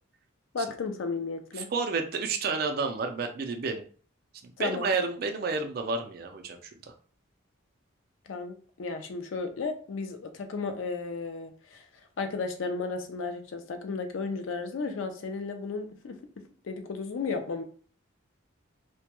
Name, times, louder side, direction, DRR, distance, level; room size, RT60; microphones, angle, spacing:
voice 1, 0.5-1.7 4.6-4.9 8.3-11.9 12.2-16.2 16.6-17.6, left 4 dB, 75° left, 6 dB, 0.4 m, -34 dB
voice 2, 1.6-3.8 4.4-6.9, right 4 dB, 50° right, 5 dB, 0.3 m, -30 dB
2.2 x 2.2 x 2.9 m, 0.43 s
head